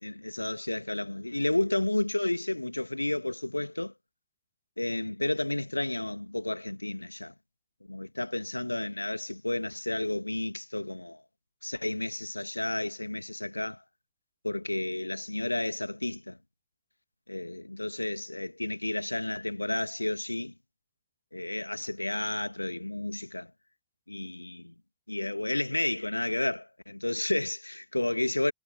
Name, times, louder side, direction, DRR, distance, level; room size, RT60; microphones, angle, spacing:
voice 1, 0.0-3.9 4.8-7.3 7.9-11.2 11.6-13.8 14.4-16.4 17.3-20.5 21.3-23.5 24.1-24.7 25.1-28.5, left 1 dB, 85° left, 2.3 m, -31 dB
figure-of-eight pair, 90°, 0 cm